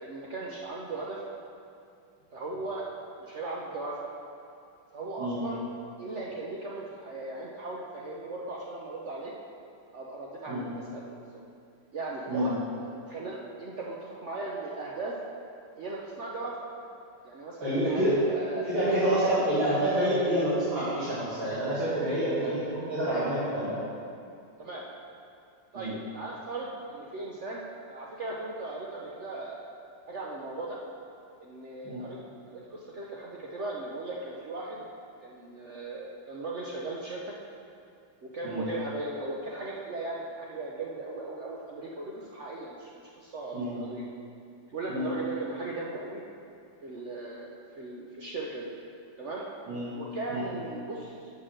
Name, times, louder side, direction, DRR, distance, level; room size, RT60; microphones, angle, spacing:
voice 1, 0.0-1.2 2.3-2.9 3.2-4.1 4.9-5.6 6.0-9.3 9.9-11.4 11.9-15.1 15.8-16.6 17.2-18.7 19.1-19.5 24.6-24.9 25.7-29.6 30.1-30.8 31.4-32.2 32.5-34.8 35.2-37.3 38.2-42.9 43.2-44.0 44.7-46.2 46.8-48.7 49.2-49.5 49.9-51.3, right 2 dB, 85° right, -4 dB, 0.6 m, -37 dB
voice 2, 17.6-18.2 18.7-23.8 25.7-25.9 31.8-32.0 38.4-38.6 43.5-43.8 44.9-45.1 49.7-49.9 50.3-50.5, right 1 dB, 70° right, -10 dB, 2.7 m, -28 dB
7.0 x 6.1 x 6.3 m, 2.4 s
omnidirectional pair, 2.3 m